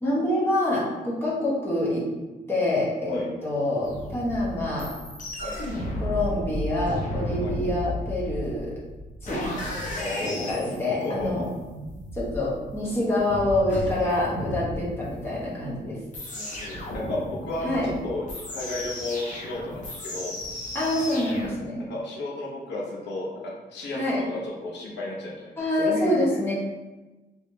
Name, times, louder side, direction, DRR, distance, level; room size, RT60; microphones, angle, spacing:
voice 1, 0.0-2.1 2.5-4.9 6.0-8.7 9.2-9.5 10.2-11.5 12.1-16.0 17.6-17.9 20.7-21.9 23.9-24.2 25.6-26.5, left 1 dB, 15° left, -6 dB, 0.9 m, -26 dB
sound 1, 3.8-21.5, left 1 dB, 45° left, 0.7 m, -34 dB
voice 2, 10.0-11.3 16.3-20.3 21.9-23.3 23.7-26.2, left 2 dB, 85° left, -3 dB, 0.8 m, -33 dB
3.2 x 3.1 x 2.7 m, 1.1 s
cardioid pair, 150°, 18 cm